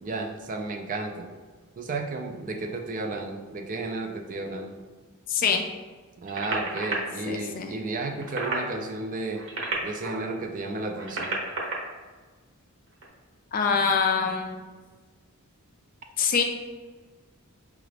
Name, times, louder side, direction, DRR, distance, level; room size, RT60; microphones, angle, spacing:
voice 1, 0.0-1.3 1.8-4.7 6.2-9.4 9.8-11.3, right 2 dB, 35° right, 4 dB, 0.4 m, -33 dB
voice 2, 5.3-5.6 7.3-7.7 13.5-14.6 16.2-16.4, left 6 dB, 40° left, 4 dB, 0.4 m, -24 dB
sound 1, 6.3-6.9 8.1-8.7 9.3-10.3 10.9-11.7 12.9-13.1, right 3 dB, 60° right, 0.8 m, -31 dB
4.9 x 2.4 x 3.2 m, 1.4 s
head